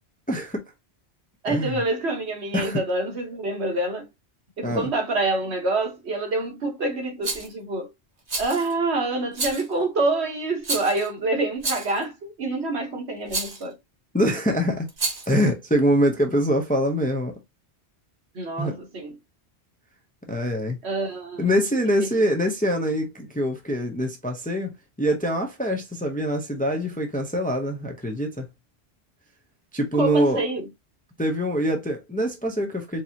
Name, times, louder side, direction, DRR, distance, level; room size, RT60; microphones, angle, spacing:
voice 1, 0.3-0.6 1.5-1.8 2.5-2.8 4.6-4.9 14.1-14.9 15.3-17.3 18.6-18.8 20.3-20.8 21.4-24.7 25.0-28.5 29.7-30.4 31.2-33.0, equal, 10° left, 0.6 m, -24 dB
voice 2, 1.4-4.0 4.6-7.9 8.4-13.8 18.3-19.1 20.8-21.6 22.0-22.1 30.0-30.7, right 2 dB, 75° right, 1.5 m, -26 dB
Rattle, 7.2-7.5 8.3-8.7 9.3-9.7 10.6-11.1 11.6-12.0 13.3-13.6 14.9-15.4, right 3 dB, 40° right, 1.2 m, -29 dB
4.6 x 2.7 x 2.8 m
omnidirectional pair, 1.1 m